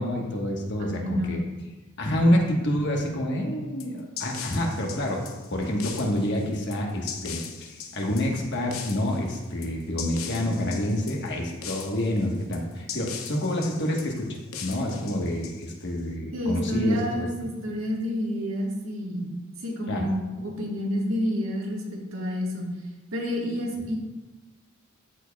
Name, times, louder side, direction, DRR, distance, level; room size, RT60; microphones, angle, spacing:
voice 1, 0.0-1.4 2.0-5.2 5.5-17.3 19.9-20.0, left 1 dB, 55° left, 0 dB, 1.2 m, -27 dB
voice 2, 0.8-1.4 16.3-19.3 19.6-22.7 23.1-24.0, equal, 70° right, -3 dB, 1.6 m, -29 dB
sound 1, 3.8-16.0, left 7 dB, 75° left, 0.7 m, -40 dB
13.5 x 4.5 x 2.3 m, 1.1 s
head